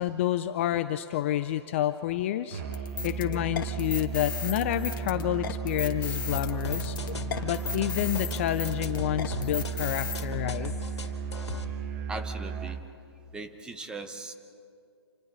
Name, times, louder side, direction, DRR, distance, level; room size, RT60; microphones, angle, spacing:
voice 1, 0.0-7.0 7.4-10.7, left 12 dB, 30° left, 11 dB, 0.5 m, -29 dB
Musical instrument, 2.5-12.9, right 6 dB, 35° right, 1.1 m, -35 dB
sound 1, 2.7-10.2, left 8 dB, 50° left, 1.3 m, -36 dB
sound 2, 6.3-11.6, left 4 dB, 85° left, 2.3 m, -38 dB
voice 2, 12.1-12.8 13.3-14.3, right 3 dB, 5° right, 8 dB, 0.9 m, -39 dB
27.0 x 26.5 x 4.0 m, 2.5 s
hypercardioid pair, 150°, 14 cm